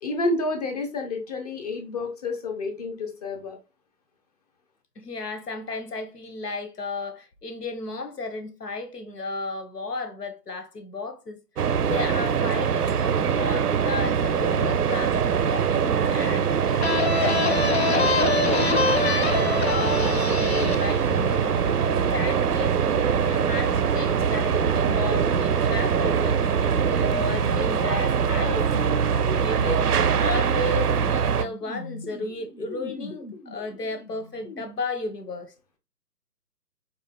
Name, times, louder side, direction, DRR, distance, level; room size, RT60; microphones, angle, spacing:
voice 1, 0.0-3.6, left 2 dB, 25° left, 0.9 m, -29 dB
voice 2, 5.0-11.4 11.8-17.4 17.8-21.5 22.1-23.0 23.3-28.7 29.4-29.9 30.2-35.5, left 3 dB, 80° left, 1.2 m, -34 dB
sound 1, 11.6-31.5, right 7 dB, 70° right, 0.6 m, -23 dB
sound 2, 16.8-22.3, left 5 dB, 45° left, 0.4 m, -26 dB
sound 3, 20.9-34.6, left 2 dB, 60° left, 1.3 m, -41 dB
4.8 x 4.1 x 2.2 m
figure-of-eight pair, 135°, 48 cm